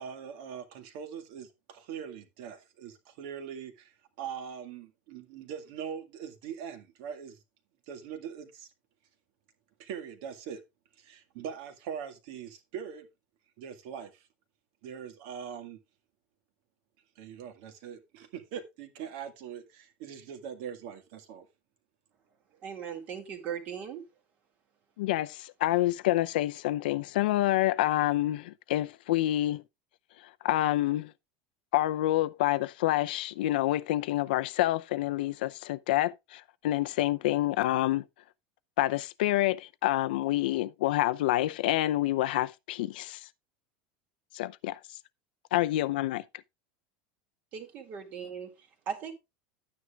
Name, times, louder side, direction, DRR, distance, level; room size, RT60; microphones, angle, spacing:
voice 1, 0.0-7.4 7.9-8.7 9.8-10.6 11.0-13.1 13.6-14.3 14.8-15.8 17.2-21.5, right 8 dB, 55° right, 1.9 m, -42 dB
voice 2, 22.6-24.0 47.5-49.1, right 7 dB, 30° right, 2.1 m, -38 dB
voice 3, 25.0-29.6 30.4-31.1 31.7-38.0 38.8-43.3 44.3-44.8 45.5-46.2, left 15 dB, 80° left, 0.6 m, -27 dB
12.0 x 9.5 x 2.4 m
supercardioid pair, 175°, 5 cm